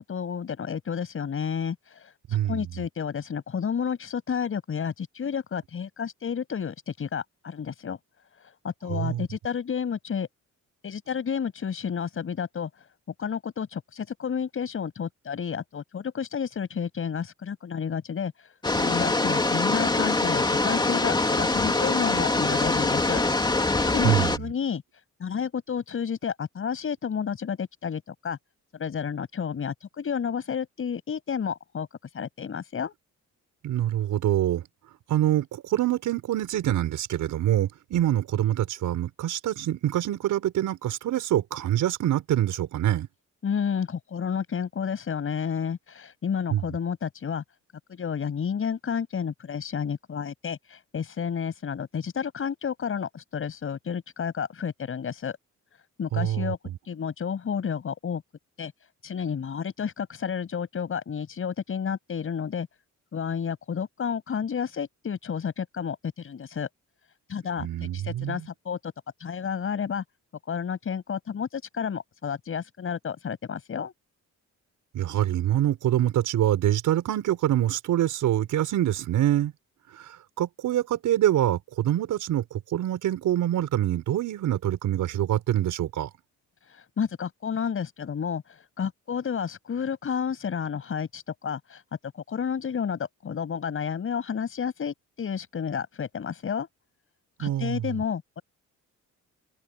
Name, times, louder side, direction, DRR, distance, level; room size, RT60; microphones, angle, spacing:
voice 1, 0.0-8.0 8.6-10.3 10.8-12.7 13.2-18.3 18.8-23.2 23.9-24.8 25.2-28.4 28.7-31.9 32.1-32.9 43.4-47.4 47.9-55.4 56.0-56.6 56.9-58.2 58.6-58.7 59.0-62.7 63.1-66.7 67.3-68.9 69.2-70.0 70.5-73.9 86.7-91.8 92.3-96.7 97.4-98.4, left 7 dB, 45° left, 7.0 m, -31 dB
voice 2, 2.3-2.6 8.9-9.3 24.0-24.4 33.6-34.6 35.1-43.1 46.5-46.6 56.1-56.5 67.6-68.4 74.9-79.5 79.9-80.1 80.4-82.4 82.7-86.1 97.4-98.0, right 12 dB, 85° right, 5.5 m, -25 dB
sound 1, 18.6-24.4, left 2 dB, 15° left, 3.1 m, -24 dB
cardioid pair, 135°, 30 cm